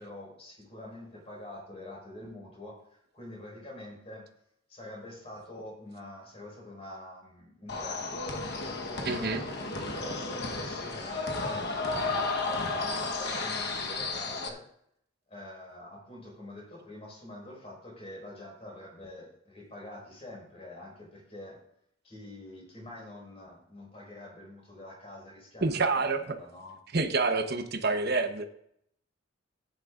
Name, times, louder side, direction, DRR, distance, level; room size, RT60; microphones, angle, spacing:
voice 1, 0.0-2.8 3.1-4.3 4.7-8.5 8.8-11.7 12.5-14.7 15.3-21.6 22.0-26.8, left 1 dB, 30° left, -3 dB, 5.2 m, -45 dB
sound 1, 7.7-14.5, left 3 dB, 55° left, 1.2 m, -33 dB
voice 2, 9.0-9.4 25.6-26.2 26.9-28.4, right 3 dB, 50° right, 6 dB, 1.0 m, -27 dB
16.0 x 10.0 x 2.5 m, 0.71 s
head